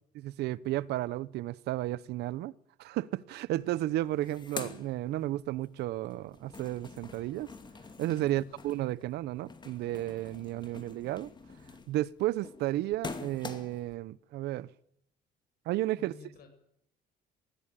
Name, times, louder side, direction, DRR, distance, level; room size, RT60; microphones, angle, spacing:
voice 1, 0.1-2.5 2.8-7.5 8.0-11.3 11.9-14.7 15.7-16.2, right 15 dB, 80° right, 0.8 m, -33 dB
sound 1, 3.5-3.6 3.9-5.7 6.0-13.9, left 4 dB, 25° left, 2.5 m, -46 dB
voice 2, 8.2-8.8 10.4-10.9 15.9-16.5, left 4 dB, 65° left, 7.4 m, -55 dB
20.0 x 15.5 x 9.1 m
cardioid pair, 110°, 17 cm